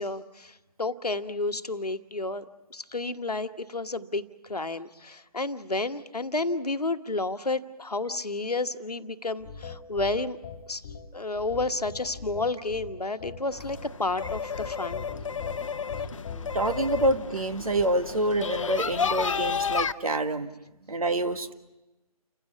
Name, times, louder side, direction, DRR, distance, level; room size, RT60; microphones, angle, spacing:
voice 1, 0.0-2.4 2.7-4.2 4.5-10.4 10.7-10.8 11.1-15.1, left 2 dB, 85° left, 9 dB, 1.3 m, -31 dB
sound 1, 9.4-17.3, left 5 dB, 30° left, 1.7 m, -40 dB
sound 2, 13.5-19.9, left 6 dB, 55° left, 0.7 m, -32 dB
voice 2, 16.5-20.5 20.9-21.5, right 1 dB, 65° right, 8 dB, 1.7 m, -27 dB
29.5 x 16.0 x 8.4 m, 1.0 s
figure-of-eight pair, 150°, 19 cm